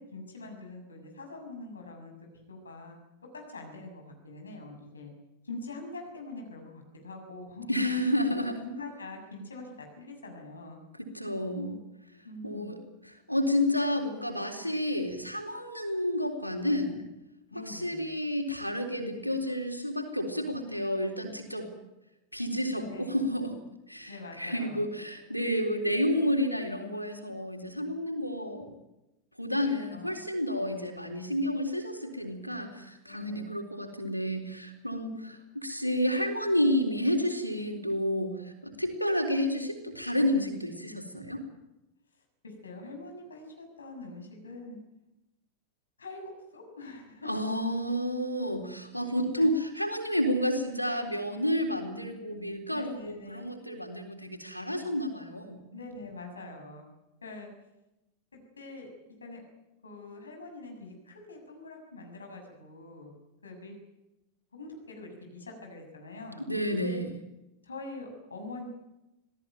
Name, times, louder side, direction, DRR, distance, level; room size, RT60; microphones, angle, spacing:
voice 1, 0.0-3.0 3.3-5.1 5.4-7.7 8.6-10.8 12.2-12.8 17.5-18.0 22.7-23.3 24.1-24.8 29.9-30.2 30.6-31.1 33.0-33.5 42.4-44.8 46.0-47.3 49.4-49.5 51.7-51.9 52.3-52.4 52.7-53.5 55.7-56.8 57.2-57.5 58.3-58.9 59.2-59.4 59.8-63.1 63.4-63.7 64.5-66.4 66.8-67.0 67.6-68.7, left 2 dB, 75° left, 3 dB, 6.9 m, -44 dB
voice 2, 7.7-8.6 11.0-11.7 12.4-12.8 13.0-17.0 17.5-21.7 22.3-23.5 23.9-28.7 29.4-41.4 47.3-55.6 66.5-67.1, equal, 90° right, 4 dB, 3.9 m, -30 dB
26.0 x 17.5 x 9.2 m, 0.94 s
figure-of-eight pair, 90°, 0 cm